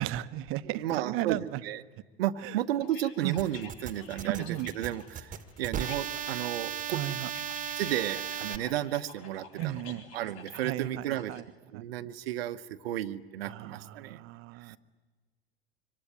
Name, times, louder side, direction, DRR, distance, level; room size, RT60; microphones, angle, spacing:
voice 1, 0.0-1.6 2.4-2.6 3.2-3.4 4.3-4.7 6.9-7.3 9.6-10.1 10.5-11.4 11.7-11.9 13.5-14.8, right 14 dB, 40° right, 14 dB, 1.0 m, -35 dB
voice 2, 0.6-1.8 2.2-4.5 4.7-7.0 7.8-9.8 10.1-11.3 11.7-14.2 14.6-14.8, right 12 dB, 65° right, 9 dB, 1.0 m, -33 dB
sound 1, 2.8-11.4, left 6 dB, 50° left, 3.6 m, -50 dB
sound 2, 3.4-8.6, right 9 dB, 25° right, 1.6 m, -36 dB
25.5 x 24.5 x 9.3 m, 1.3 s
figure-of-eight pair, 85°, 32 cm